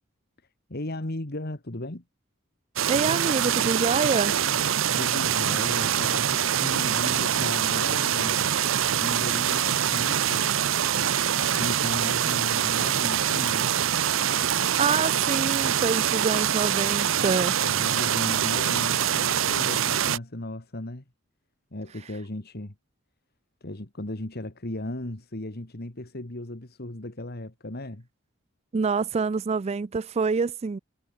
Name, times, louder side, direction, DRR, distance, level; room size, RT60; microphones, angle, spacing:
voice 1, 0.7-2.0 5.0-8.5 9.0-10.5 11.4-13.7 17.6-21.0 21.7-22.7 23.6-28.1, left 1 dB, 50° left, 2.1 m, -36 dB
sound 1, 2.8-20.2, right 9 dB, 75° right, 0.8 m, -24 dB
voice 2, 2.9-4.3 14.8-17.6 28.7-30.8, right 5 dB, 30° right, 0.4 m, -26 dB
head